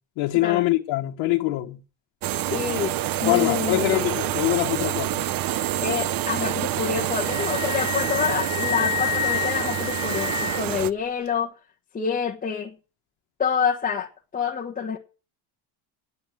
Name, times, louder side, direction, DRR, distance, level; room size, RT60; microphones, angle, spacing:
voice 1, 0.2-1.8 3.3-5.2, left 18 dB, 80° left, 1.4 m, -23 dB
sound 1, 2.2-10.9, right 13 dB, 50° right, 0.7 m, -27 dB
voice 2, 2.5-2.9 3.2-4.1 5.8-11.5 11.9-12.7 13.4-15.0, left 7 dB, 20° left, 1.3 m, -27 dB
Wind instrument woodwind instrument, 6.9-10.8, left 10 dB, 45° left, 1.6 m, -29 dB
11.0 x 8.2 x 7.7 m
cardioid pair, 155°, 45 cm